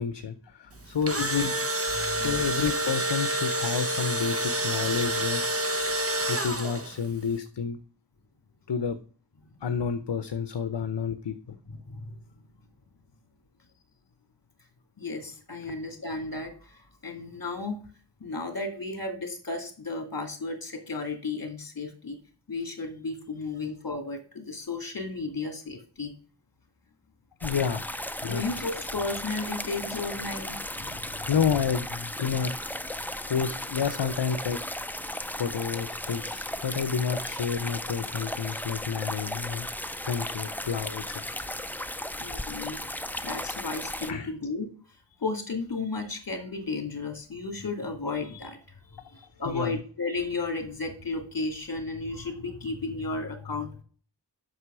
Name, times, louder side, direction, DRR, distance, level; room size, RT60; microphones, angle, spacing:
voice 1, 0.0-1.5 2.1-5.4 6.3-7.8 8.7-9.0 9.6-11.3 27.4-27.9 28.2-28.6 31.3-32.5 33.3-34.6 35.3-39.7 40.0-41.2 44.1-44.3 49.5-49.7, left 6 dB, 70° left, 11 dB, 0.8 m, -29 dB
Engine / Drill, 0.8-7.1, right 1 dB, 30° right, 1.4 m, -28 dB
voice 2, 2.0-2.4 11.7-12.1 15.0-17.8 18.2-22.2 22.5-26.1 28.2-31.3 42.2-42.8 43.2-44.7 45.2-48.6 48.9-53.8, left 3 dB, 50° left, 6 dB, 2.3 m, -34 dB
sound 1, 27.4-44.1, left 1 dB, 5° left, 0.6 m, -35 dB
8.0 x 6.2 x 6.1 m, 0.43 s
wide cardioid pair, 70°, 44 cm